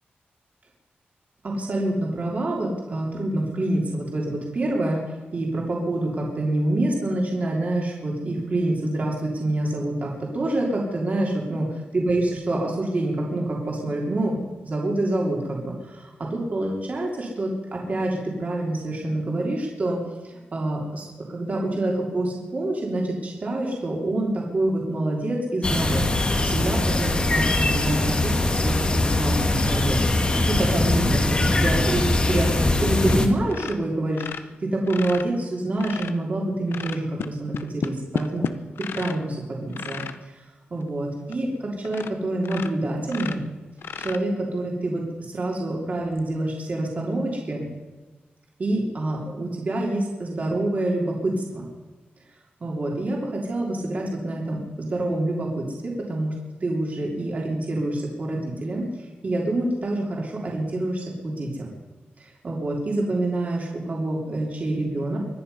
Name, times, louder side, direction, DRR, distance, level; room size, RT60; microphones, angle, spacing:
voice 1, 1.4-20.0 20.2-26.0 26.4-30.1 30.5-38.4 38.9-40.4 40.7-43.4 44.0-47.6 48.6-51.7 52.6-56.3 56.6-61.7 62.2-65.2, right 1 dB, 40° right, -2 dB, 3.2 m, -27 dB
sound 1, 25.6-33.3, left 2 dB, 25° left, 1.6 m, -22 dB
sound 2, 33.1-33.2 33.5-36.2 36.7-39.2 39.7-40.2 40.8-40.9 41.3-41.4 41.8-42.2 42.4-44.6 46.1-46.2, left 7 dB, 90° left, 0.8 m, -33 dB
24.5 x 10.5 x 5.5 m, 1.2 s
wide cardioid pair, 140°, 4 cm